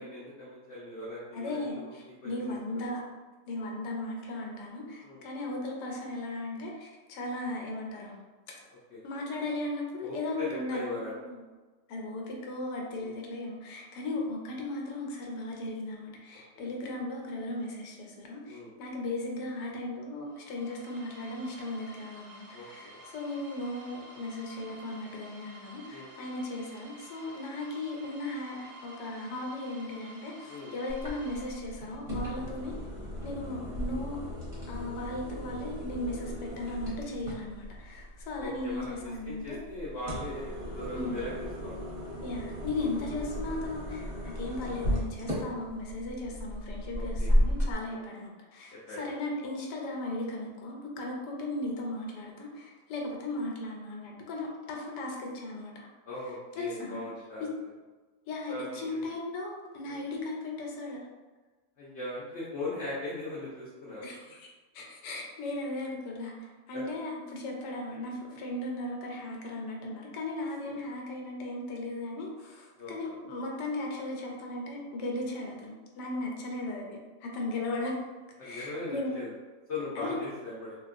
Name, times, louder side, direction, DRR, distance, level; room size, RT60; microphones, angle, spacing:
voice 1, 0.0-1.9 2.2-2.4 2.7-2.8 5.0-5.2 8.9-9.0 10.0-11.2 13.0-13.2 16.5-16.7 18.5-18.7 22.5-23.0 25.9-26.1 30.5-30.7 38.4-41.9 46.9-47.4 47.9-48.1 48.9-49.1 56.1-57.5 58.5-59.1 59.8-60.0 61.8-64.0 66.7-66.8 70.6-70.8 72.8-72.9 78.4-79.3 79.7-80.8, left 2 dB, 55° left, -8 dB, 0.8 m, -39 dB
voice 2, 1.3-3.0 3.5-8.1 9.0-10.8 11.2-11.4 11.9-32.7 33.2-34.2 34.7-39.6 40.9-41.2 42.2-55.9 56.6-57.1 57.4-57.5 58.3-61.0 64.0-64.5 64.7-78.0 78.4-79.1 80.0-80.3, left 2 dB, 85° left, -1 dB, 1.2 m, -37 dB
sound 1, 20.3-32.1, equal, 60° right, 0.8 m, -51 dB
sound 2, 30.9-47.7, equal, 30° right, 0.6 m, -35 dB
3.6 x 2.3 x 2.5 m, 1.3 s
omnidirectional pair, 1.8 m